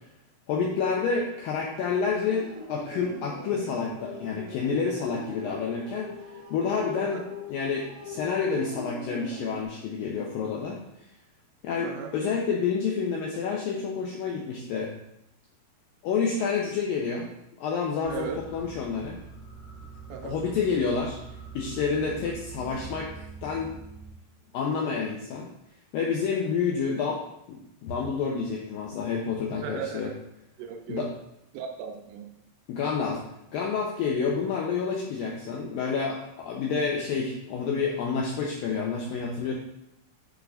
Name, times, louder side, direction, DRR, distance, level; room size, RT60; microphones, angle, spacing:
voice 1, 0.5-10.8 11.6-14.9 16.0-17.3 17.6-19.2 20.2-21.2 21.5-23.7 24.5-25.5 25.9-27.2 27.5-30.1 30.9-31.1 32.7-33.2 33.5-39.5, left 5 dB, 80° left, -2 dB, 2.1 m, -29 dB
sound 1, 1.7-9.6, left 2 dB, 65° right, 2.4 m, -41 dB
sound 2, 18.0-24.1, right 5 dB, 50° left, 4.2 m, -44 dB
voice 2, 18.1-18.4 20.1-20.4 29.6-30.2 30.6-31.1 31.5-32.3, right 8 dB, 90° right, 3 dB, 3.0 m, -37 dB
8.7 x 6.7 x 2.5 m, 0.81 s
omnidirectional pair, 4.8 m